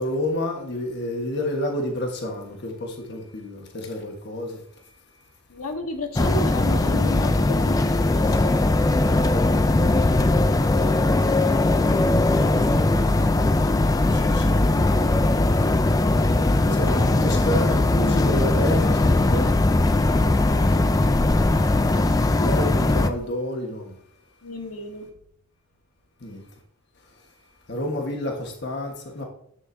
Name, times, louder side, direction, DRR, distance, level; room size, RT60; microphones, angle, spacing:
voice 1, 0.0-4.6 14.0-15.2 16.6-19.6 22.4-23.9 26.2-26.5 27.7-29.2, left 1 dB, 50° left, 1.4 m, -29 dB
voice 2, 5.5-8.8 20.1-21.3 24.4-25.1, left 1 dB, 90° left, 1.3 m, -33 dB
sound 1, 6.2-23.1, left 2 dB, 15° left, 0.3 m, -20 dB
10.0 x 7.3 x 2.7 m
head